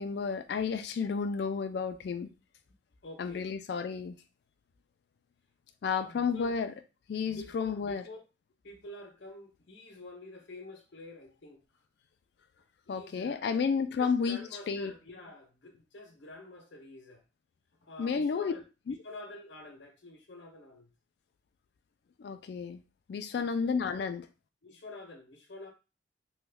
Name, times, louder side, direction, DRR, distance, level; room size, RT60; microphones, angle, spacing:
voice 1, 0.0-2.3 3.2-4.2 5.8-6.7 7.1-8.0 12.9-14.4 14.7-14.9 18.0-18.5 18.9-19.0 22.2-22.8 23.1-24.3, left 5 dB, 60° left, 0.3 m, -31 dB
voice 2, 3.0-3.5 6.0-6.6 7.2-8.2 8.6-11.6 12.9-17.2 17.8-18.6 19.0-20.9 23.3-23.7 24.6-25.7, left 2 dB, 80° left, 0.8 m, -48 dB
3.0 x 2.2 x 3.4 m
head